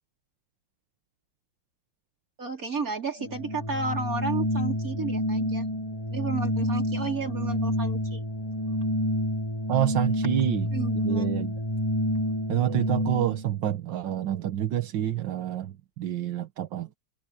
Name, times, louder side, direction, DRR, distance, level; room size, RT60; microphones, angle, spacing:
voice 1, 2.4-5.7 6.1-8.2 10.7-11.3, right 4 dB, 50° right, 4.9 m, -32 dB
Organ, 3.1-13.5, equal, 15° left, 7.3 m, -28 dB
voice 2, 9.7-10.7 11.0-11.5 12.5-17.0, right 11 dB, 80° right, 1.8 m, -28 dB
omnidirectional pair, 2.0 m